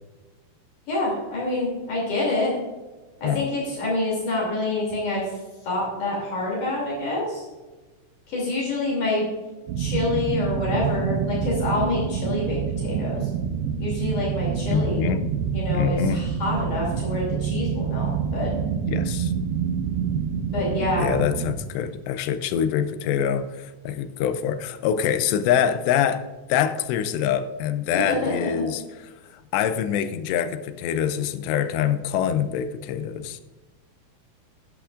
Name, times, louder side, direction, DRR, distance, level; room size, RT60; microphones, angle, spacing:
voice 1, 0.9-2.6 3.2-5.2 5.6-7.4 8.3-9.3 9.8-13.3 13.8-15.1 15.5-18.5 20.5-21.1 28.1-28.7, left 2 dB, 50° left, -4 dB, 4.1 m, -27 dB
sound 1, 9.7-21.6, right 7 dB, 80° right, 2.5 m, -27 dB
voice 2, 14.7-15.3 15.7-16.2 18.9-19.3 21.0-28.8 29.5-33.4, left 9 dB, 85° left, 11 dB, 2.8 m, -25 dB
11.5 x 10.5 x 2.5 m, 1.2 s
omnidirectional pair, 4.9 m